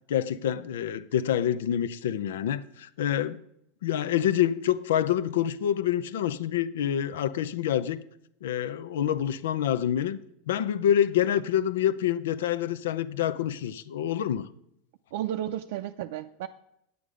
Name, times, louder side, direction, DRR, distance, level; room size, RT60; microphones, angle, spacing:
voice 1, 0.1-3.4 3.8-8.0 8.4-10.2 10.5-14.5, left 10 dB, 85° left, 0.6 m, -27 dB
voice 2, 15.1-16.5, right 12 dB, 75° right, 0.5 m, -33 dB
9.4 x 8.4 x 5.0 m
supercardioid pair, 120°, 0 cm